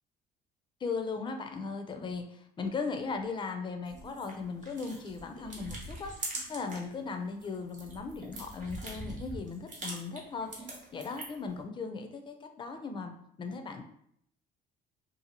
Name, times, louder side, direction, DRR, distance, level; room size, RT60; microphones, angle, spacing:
voice 1, 0.8-13.1 13.4-13.8, left 4 dB, 30° left, 5 dB, 0.4 m, -38 dB
sound 1, 3.8-6.9 7.3-11.5, right 2 dB, 50° right, 0.9 m, -43 dB
2.6 x 2.4 x 2.8 m, 0.71 s
cardioid pair, 110°, 17 cm